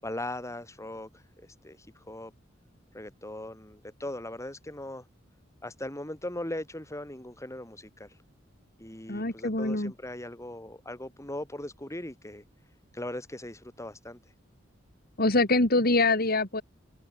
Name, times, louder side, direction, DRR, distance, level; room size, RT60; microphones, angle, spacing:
voice 1, 0.0-2.3 2.9-5.1 5.6-8.2 8.8-12.4 12.9-14.2, left 1 dB, 15° left, 7.6 m, -39 dB
voice 2, 9.1-9.9 15.2-16.6, left 2 dB, 50° left, 3.4 m, -24 dB
head